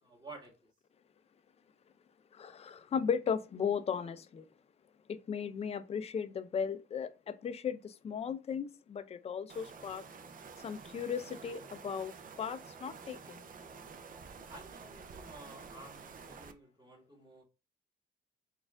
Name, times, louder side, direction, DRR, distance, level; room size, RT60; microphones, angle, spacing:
voice 1, 0.0-0.5 14.5-17.4, right 2 dB, 20° right, 1.3 m, -52 dB
voice 2, 2.3-4.4 5.1-10.0 10.6-12.1 12.4-13.4, left 7 dB, 30° left, 0.4 m, -36 dB
sound 1, 9.5-16.5, right 5 dB, 45° right, 0.5 m, -50 dB
4.2 x 2.4 x 3.5 m
cardioid pair, 115°, 21 cm